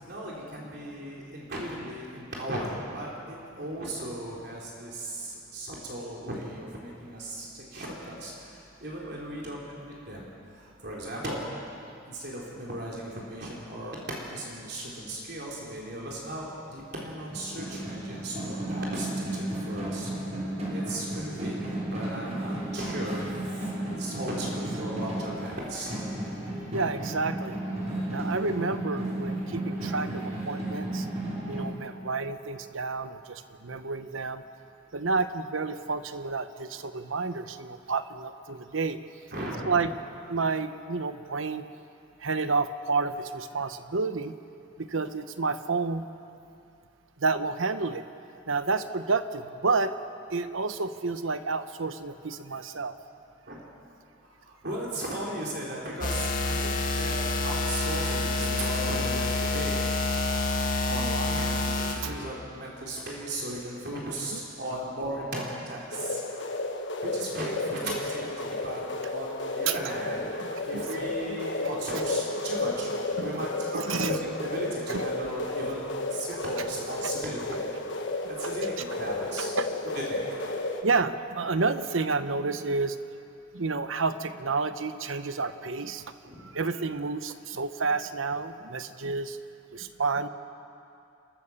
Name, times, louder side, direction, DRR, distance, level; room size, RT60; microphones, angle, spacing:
voice 1, 0.1-10.3 10.6-11.4 12.1-20.1 20.7-23.3 23.9-25.9 39.3-39.9 53.5-53.6 54.5-57.2 57.4-59.8 60.9-66.2 67.0-68.8 69.1-70.4 70.7-77.6 78.4-79.5 79.9-80.2 86.2-86.5, right 1 dB, 55° right, -4 dB, 3.6 m, -36 dB
sound 1, 17.1-31.6, right 1 dB, 35° right, 5.3 m, -33 dB
voice 2, 26.7-27.6 28.1-31.1 31.5-34.4 34.9-39.0 39.7-39.9 40.3-41.7 42.2-44.4 44.8-46.1 47.2-48.0 48.5-49.9 50.3-53.0 58.5-59.8 60.3-60.4 62.0-62.2 64.3-64.4 67.5-67.9 69.7-69.8 70.5-70.8 71.6-71.7 73.2-73.5 73.7-74.2 74.9-75.1 76.6-76.7 77.0-77.1 79.1-79.8 80.8-83.0 83.5-86.1 86.4-89.4 89.7-90.3, right 4 dB, 80° right, 10 dB, 1.0 m, -30 dB
sound 2, 56.0-62.0, left 2 dB, 45° left, 2.1 m, -28 dB
sound 3, 65.9-80.8, left 2 dB, 65° left, 1.5 m, -32 dB
29.5 x 14.0 x 7.2 m, 2.6 s
head